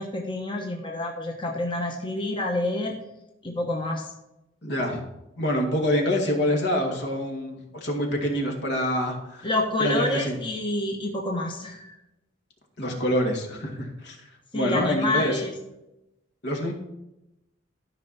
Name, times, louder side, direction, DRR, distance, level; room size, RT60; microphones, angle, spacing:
voice 1, 0.0-2.9 3.4-4.1 9.4-12.0 14.5-15.5, left 2 dB, 25° left, 1 dB, 1.1 m, -28 dB
voice 2, 4.6-5.0 5.4-9.5 9.8-10.4 12.8-14.2 14.5-15.5 16.4-16.7, equal, 65° left, 1 dB, 2.1 m, -26 dB
13.5 x 5.7 x 4.2 m, 0.91 s
head